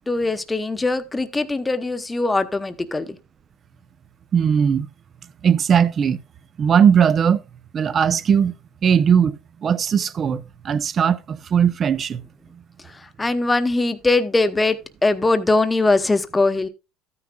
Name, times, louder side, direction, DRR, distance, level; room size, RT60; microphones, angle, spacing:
voice 1, 0.1-3.2 12.8-16.7, left 2 dB, 10° left, 0.9 m, -21 dB
voice 2, 4.3-4.9 5.4-6.2 6.6-7.4 7.7-8.5 8.8-12.2, right 7 dB, 35° right, 0.6 m, -18 dB
13.0 x 9.6 x 2.3 m
supercardioid pair, 120°, 0 cm